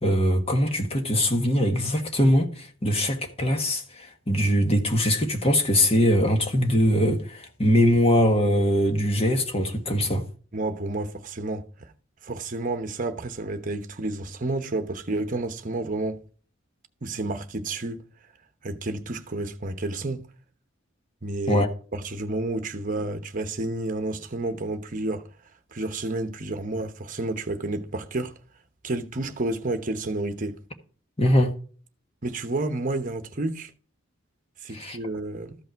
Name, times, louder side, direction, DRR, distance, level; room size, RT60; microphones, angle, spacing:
voice 1, 0.0-10.2 21.5-21.7 31.2-31.5 34.7-35.0, equal, 30° left, 1.5 m, -22 dB
voice 2, 10.5-11.9 12.2-16.2 17.0-18.0 18.6-20.3 21.2-21.6 21.9-25.3 25.7-28.3 28.8-30.6 32.2-33.7 34.6-35.6, right 2 dB, 40° right, 1.0 m, -30 dB
13.5 x 5.5 x 4.6 m
head